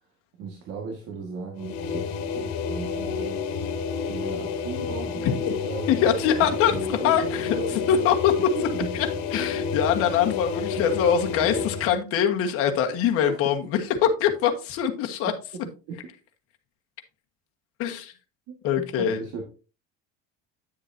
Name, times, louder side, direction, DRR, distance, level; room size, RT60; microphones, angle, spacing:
voice 1, 0.4-2.1 2.3-3.4 4.1-8.1 8.6-8.9 10.8-10.9 11.4-11.7 13.3-13.4 15.9-16.0 18.5-19.4, right 5 dB, 55° right, 1.7 m, -37 dB
sound 1, 1.6-12.0, left 6 dB, 65° left, 1.7 m, -30 dB
voice 2, 5.9-8.3 8.9-9.1 9.3-15.3 17.8-18.1 18.6-19.2, left 8 dB, 45° left, 1.5 m, -23 dB
9.9 x 7.2 x 2.7 m
cardioid pair, 160°, 31 cm